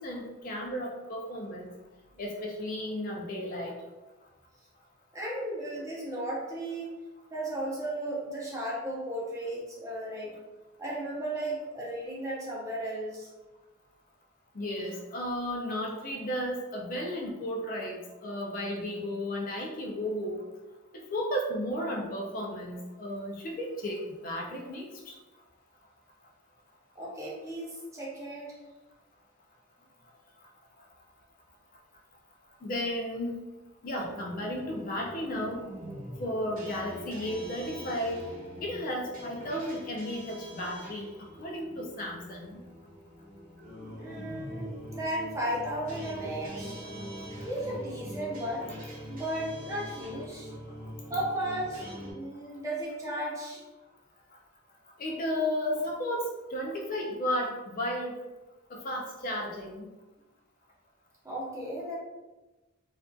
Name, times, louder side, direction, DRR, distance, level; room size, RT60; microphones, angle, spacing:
voice 1, 0.0-1.8 2.2-3.8 14.5-20.4 20.9-25.2 32.6-33.5 33.8-35.6 36.2-38.2 38.6-42.6 55.0-58.2 58.7-59.9, equal, 40° left, -1 dB, 0.4 m, -34 dB
voice 2, 5.1-6.9 7.3-10.4 10.8-13.3 27.0-28.5 43.9-46.8 47.4-48.7 49.1-50.5 51.1-53.6 61.2-62.0, right 1 dB, 15° right, -4 dB, 0.5 m, -35 dB
sound 1, 34.0-52.1, equal, 45° right, 0.8 m, -43 dB
2.5 x 2.4 x 2.3 m, 1.1 s
head